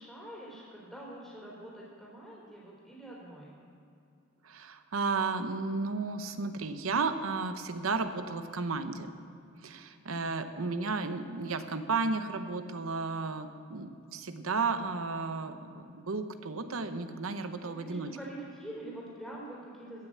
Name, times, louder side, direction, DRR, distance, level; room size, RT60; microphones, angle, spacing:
voice 1, 0.0-3.5 14.6-14.8 17.6-20.1, right 1 dB, 5° left, -7 dB, 3.1 m, -45 dB
voice 2, 4.4-9.1 9.6-18.1, right 4 dB, 70° right, 9 dB, 0.8 m, -33 dB
15.5 x 6.6 x 7.6 m, 2.6 s
head